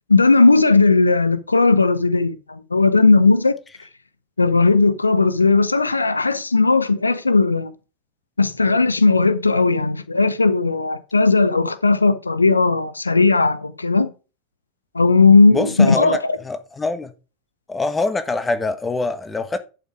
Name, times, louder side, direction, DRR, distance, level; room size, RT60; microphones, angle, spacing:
voice 1, 0.1-3.5 3.8-3.9 4.4-7.7 8.4-14.1 14.9-16.4, left 3 dB, 85° left, 0.6 m, -16 dB
voice 2, 15.5-16.2 16.4-17.1 17.7-19.6, left 3 dB, 15° left, 1.4 m, -24 dB
11.0 x 5.8 x 4.8 m
figure-of-eight pair, 80°, 0 cm